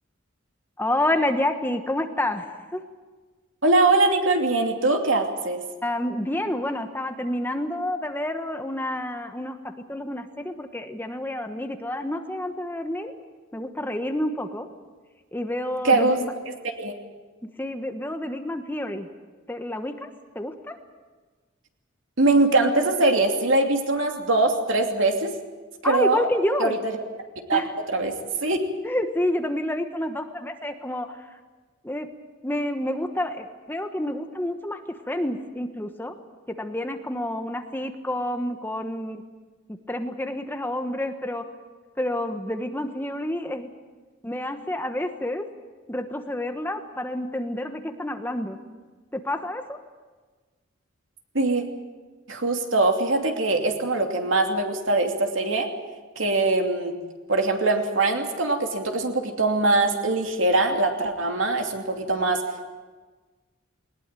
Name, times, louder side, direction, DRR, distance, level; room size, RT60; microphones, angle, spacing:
voice 1, 0.8-2.5 2.7-2.8 5.8-9.6 9.9-13.1 13.5-14.7 15.3-16.3 17.6-19.1 19.5-20.1 20.3-20.8 25.8-26.8 27.5-27.7 28.8-31.3 31.8-32.1 32.4-36.1 36.5-39.2 39.7-41.4 42.0-43.7 44.2-45.4 45.9-48.6 49.1-49.8, left 1 dB, 10° left, 6 dB, 1.2 m, -29 dB
voice 2, 3.6-5.6 15.8-16.2 16.8-16.9 22.2-25.3 25.8-26.3 26.6-26.8 27.5-27.6 27.9-28.1 28.4-28.6 51.3-51.6 52.3-55.7 56.2-57.0 57.3-62.4, right 2 dB, 75° right, 3 dB, 2.8 m, -22 dB
20.0 x 19.5 x 9.1 m, 1.4 s
head